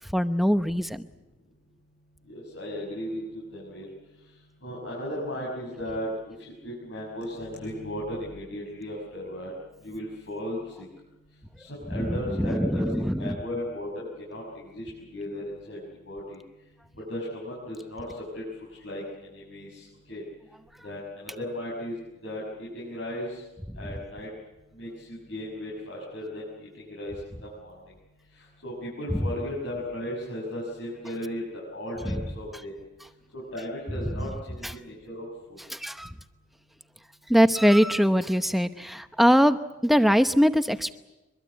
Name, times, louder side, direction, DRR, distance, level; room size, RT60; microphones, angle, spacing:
voice 1, 0.1-1.1 11.9-13.4 32.1-32.2 34.6-34.7 35.7-36.1 37.3-40.9, equal, ahead, 10 dB, 0.9 m, -22 dB
voice 2, 2.3-3.9 4.6-6.3 6.6-9.5 9.8-10.6 11.6-12.9 13.1-15.8 16.1-16.4 17.1-18.1 18.3-18.4 18.8-19.0 19.3-20.2 20.8-22.0 22.2-23.4 23.8-24.3 24.8-27.1 27.4-27.7 28.6-31.4 31.7-32.7 33.3-35.3, equal, 75° left, -4 dB, 6.6 m, -36 dB
23.5 x 23.0 x 8.2 m, 1.0 s
head